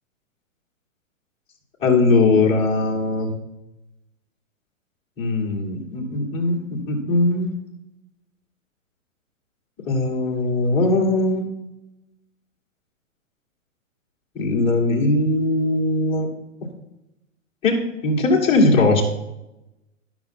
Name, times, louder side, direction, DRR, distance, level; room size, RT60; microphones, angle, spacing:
voice 1, 1.8-3.3 5.2-7.6 9.8-11.4 14.3-16.3 17.6-19.0, left 2 dB, 15° left, -2 dB, 1.4 m, -20 dB
11.5 x 5.9 x 4.3 m, 0.93 s
hypercardioid pair, 155°, 40 cm